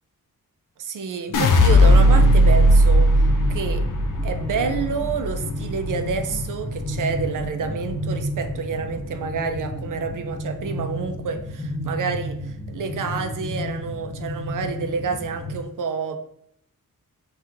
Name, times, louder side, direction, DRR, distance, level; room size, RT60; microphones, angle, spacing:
voice 1, 0.8-3.9 4.2-16.2, right 5 dB, 65° right, 7 dB, 0.5 m, -28 dB
sound 1, 1.3-7.5 7.9-8.5, equal, 65° left, 0.6 m, -18 dB
sound 2, 1.3-15.6, left 1 dB, 30° left, 1.3 m, -32 dB
5.6 x 2.4 x 3.0 m, 0.72 s
wide cardioid pair, 180°, 33 cm